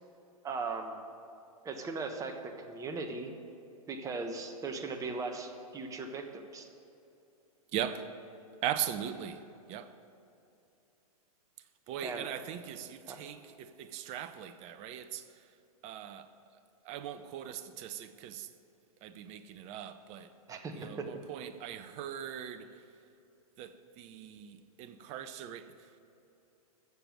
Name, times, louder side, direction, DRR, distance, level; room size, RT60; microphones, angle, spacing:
voice 1, 0.4-1.0 1.6-3.3 3.9-6.7 12.0-12.3 13.1-13.2 20.5-21.1, right 3 dB, 15° right, 1.2 m, -38 dB
voice 2, 7.7-8.1 8.6-9.9 11.9-15.5 15.8-16.3 16.8-18.5 19.0-22.8 23.6-26.0, right 10 dB, 35° right, 0.8 m, -40 dB
15.0 x 7.0 x 7.7 m
hypercardioid pair, 115°, 19 cm